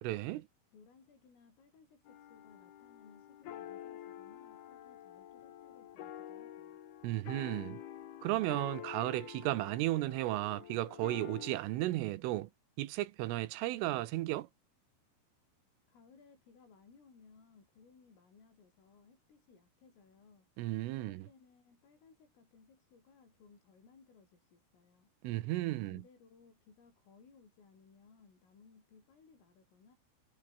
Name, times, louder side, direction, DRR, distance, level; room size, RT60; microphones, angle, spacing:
voice 1, 0.0-0.5 7.0-7.8 8.2-12.5 12.8-14.5 20.6-21.2 25.2-26.0, right 17 dB, 85° right, 3.7 m, -34 dB
voice 2, 0.7-6.8 15.9-20.5 20.9-25.1 25.8-30.0, left 5 dB, 80° left, 10.5 m, -63 dB
sound 1, 2.1-11.6, left 11 dB, 60° left, 3.2 m, -48 dB
omnidirectional pair, 5.8 m